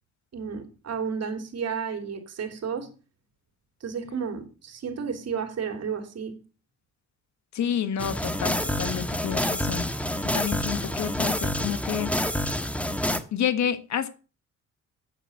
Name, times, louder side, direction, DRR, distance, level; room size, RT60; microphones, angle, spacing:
voice 1, 0.3-2.9 3.8-6.4, right 6 dB, 55° right, 3.0 m, -32 dB
voice 2, 7.5-9.9 10.3-12.1 13.3-14.1, left 9 dB, 65° left, 1.4 m, -29 dB
sound 1, 8.0-13.2, left 1 dB, 5° left, 1.4 m, -28 dB
9.0 x 7.6 x 7.9 m
cardioid pair, 90°, 30 cm